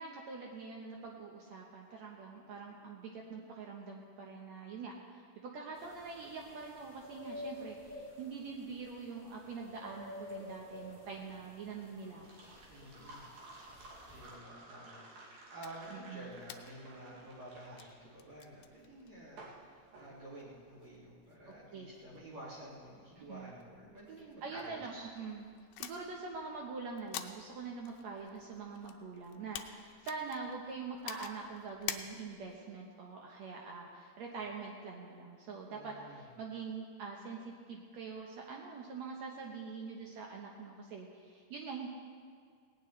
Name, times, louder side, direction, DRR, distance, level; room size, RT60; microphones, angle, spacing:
voice 1, 0.0-12.3 15.9-16.3 21.7-22.0 23.2-23.5 24.4-25.5 25.8-41.9, right 4 dB, 85° right, -1 dB, 1.5 m, -44 dB
sound 1, 5.8-14.4, left 2 dB, 5° left, 3.3 m, -50 dB
sound 2, 11.2-20.9, right 2 dB, 65° right, 4.0 m, -55 dB
voice 2, 12.7-13.2 14.1-15.0 15.5-25.1 35.7-36.2, right 1 dB, 45° right, -8 dB, 3.3 m, -50 dB
sound 3, 15.6-32.6, left 11 dB, 80° left, 2.4 m, -50 dB
18.5 x 18.0 x 3.2 m, 2.1 s
omnidirectional pair, 4.7 m